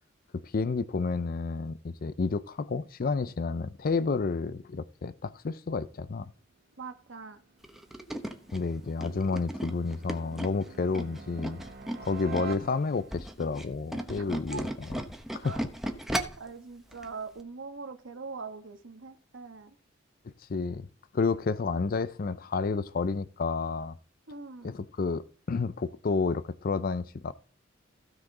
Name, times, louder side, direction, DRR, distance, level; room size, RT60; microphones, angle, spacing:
voice 1, 0.3-6.3 8.5-11.6 12.0-14.7 15.3-15.5 20.5-20.9 21.1-23.9 24.6-27.3, left 4 dB, 45° left, 0.5 m, -30 dB
voice 2, 6.8-7.4 14.2-14.6 15.4-15.6 16.4-19.8 24.3-24.7, right 4 dB, 70° right, 1.3 m, -42 dB
sound 1, 6.9-13.3, right 5 dB, 50° right, 0.9 m, -47 dB
Tools, 7.6-12.6 13.0-16.5 16.9-17.1 17.4-17.5, equal, ahead, 1.0 m, -36 dB
16.0 x 5.9 x 3.8 m
head